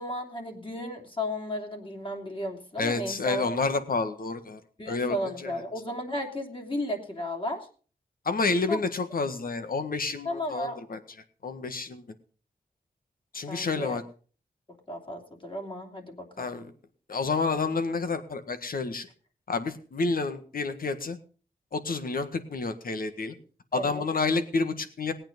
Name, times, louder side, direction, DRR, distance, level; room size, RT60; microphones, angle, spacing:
voice 1, 0.0-3.6 4.8-7.7 8.7-8.8 10.2-10.8 13.5-14.0 14.9-16.5 23.7-24.0, left 1 dB, 30° left, 2 dB, 3.1 m, -34 dB
voice 2, 2.8-4.6 4.9-5.2 5.4-5.5 8.3-11.0 11.4-12.0 13.3-14.0 16.4-16.7 17.1-19.1 19.5-21.2 21.7-23.4 23.7-25.1, left 4 dB, 65° left, 9 dB, 1.7 m, -29 dB
19.0 x 8.9 x 5.3 m, 0.40 s
wide cardioid pair, 95°, 16 cm